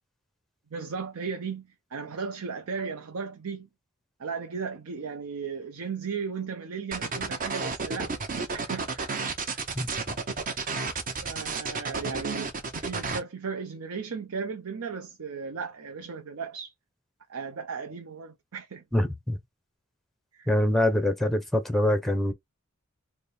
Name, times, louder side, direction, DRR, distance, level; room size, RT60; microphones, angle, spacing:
voice 1, 0.7-3.7 4.2-8.2 8.5-9.2 9.5-9.6 10.5-10.7 11.2-12.5 12.8-16.7 17.3-18.8 20.3-20.5, right 5 dB, 70° right, 0.7 m, -36 dB
sound 1, 6.9-13.2, right 4 dB, 40° right, 0.7 m, -31 dB
voice 2, 18.9-19.4 20.5-22.3, left 1 dB, ahead, 0.6 m, -24 dB
4.1 x 2.1 x 3.4 m
head